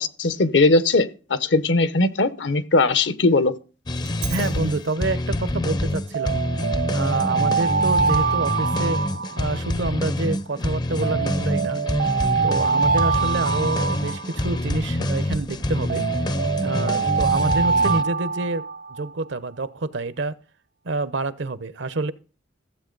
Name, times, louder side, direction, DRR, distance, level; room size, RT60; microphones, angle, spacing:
voice 1, 0.0-3.5, left 3 dB, 70° left, 0.9 m, -19 dB
sound 1, 3.9-18.0, left 1 dB, 25° left, 0.5 m, -26 dB
Alarm, 4.1-4.4 6.1-9.9 11.0-14.8 15.9-19.1, right 5 dB, 55° right, 0.4 m, -24 dB
voice 2, 4.3-6.4 6.9-9.0 9.4-11.8 12.4-16.1 16.6-20.4 20.8-22.1, right 2 dB, 75° right, 0.8 m, -28 dB
15.0 x 7.9 x 3.9 m
head